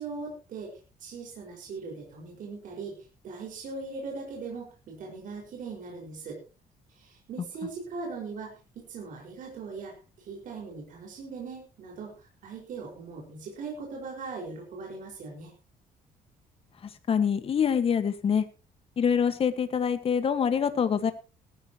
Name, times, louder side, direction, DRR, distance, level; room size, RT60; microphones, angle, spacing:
voice 1, 0.0-6.4 6.9-15.5, right 4 dB, 60° right, 0 dB, 5.4 m, -40 dB
voice 2, 16.8-18.4 19.0-21.1, left 7 dB, 40° left, 10 dB, 1.6 m, -25 dB
18.0 x 14.0 x 3.0 m, 0.32 s
cardioid pair, 155°, 15 cm